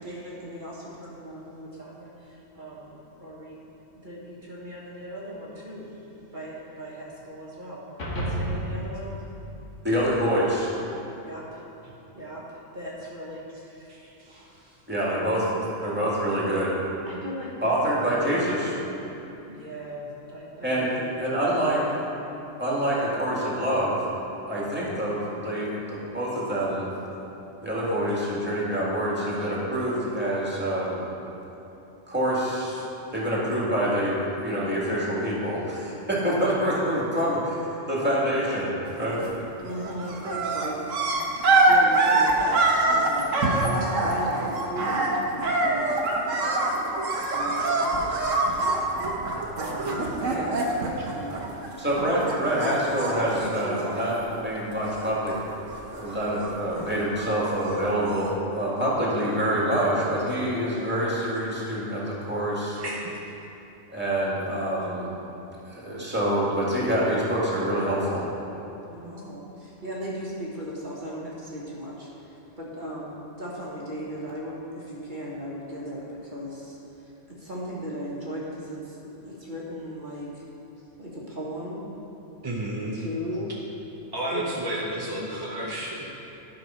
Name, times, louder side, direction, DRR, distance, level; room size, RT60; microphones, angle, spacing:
voice 1, 0.0-3.6 3.9-7.8 8.1-9.2 11.2-11.6 12.1-13.9 15.1-15.6 17.0-18.0 19.5-21.1 29.4-29.5 32.6-32.7 39.6-40.9 41.7-42.6 42.9-46.0 47.3-48.3 49.5-50.6 51.0-51.5 52.0-52.1 52.5-52.8 53.1-54.0 58.6-59.2 68.9-80.4 81.0-81.8 82.9-83.5 84.3-84.6, equal, 40° right, -6 dB, 1.6 m, -37 dB
sound 1, 8.0-10.5, equal, 70° left, 1.9 m, -33 dB
voice 2, 9.8-10.7 14.9-15.4 15.8-16.8 17.6-18.8 20.6-20.9 21.2-21.8 22.6-24.0 24.5-26.9 27.6-31.0 32.1-32.8 33.1-39.2 51.8-55.4 55.9-62.8 63.9-65.1 65.6-68.3, right 1 dB, 10° right, -6 dB, 2.1 m, -26 dB
voice 3, 13.9-14.8 51.0-51.1 62.8-63.1 82.4-83.1 84.1-86.1, right 1 dB, 25° right, -4 dB, 0.6 m, -32 dB
sound 2, 39.0-39.4 39.7-52.0 52.3-54.4 54.7-55.4 55.7-57.5 58.2-58.3, right 2 dB, 80° right, 1.4 m, -25 dB
11.5 x 5.6 x 5.7 m, 2.9 s
omnidirectional pair, 1.3 m